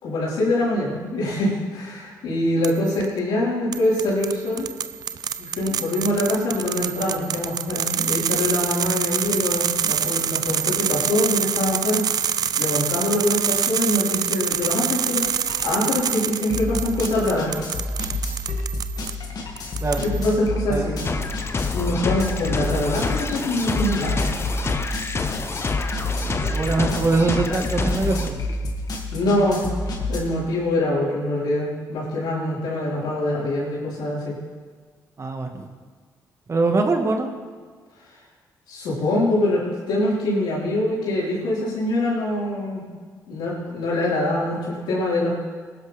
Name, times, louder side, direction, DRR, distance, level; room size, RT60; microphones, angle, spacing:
voice 1, 0.0-4.7 5.4-12.0 12.6-15.2 15.6-17.5 20.0-21.0 21.7-24.2 29.1-29.8 30.1-34.4 38.7-42.8 43.3-45.3, left 1 dB, 85° left, -6 dB, 4.8 m, -24 dB
sound 1, 2.6-3.1 3.7-19.2 19.6-20.3, right 8 dB, 60° right, 0.5 m, -26 dB
sound 2, 14.5-14.7 15.0-30.2, left 2 dB, 60° left, 2.2 m, -29 dB
sound 3, 21.0-28.3, left 3 dB, 35° left, 0.9 m, -27 dB
voice 2, 26.5-28.4 35.2-35.7 36.5-37.3, right 3 dB, 40° right, 4 dB, 1.7 m, -22 dB
18.5 x 11.0 x 3.6 m, 1.5 s
cardioid pair, 65°, 8 cm